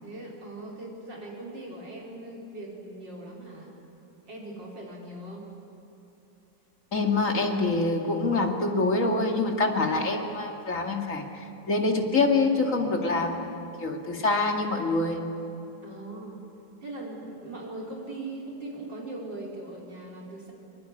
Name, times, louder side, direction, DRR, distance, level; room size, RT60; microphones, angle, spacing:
voice 1, 0.0-3.7 4.3-5.5 15.8-16.4 16.8-20.5, right 2 dB, 80° right, -2 dB, 5.2 m, -40 dB
voice 2, 6.9-11.2 11.7-15.2, left 3 dB, 45° left, 2 dB, 2.6 m, -25 dB
23.0 x 22.5 x 9.8 m, 2.8 s
omnidirectional pair, 2.0 m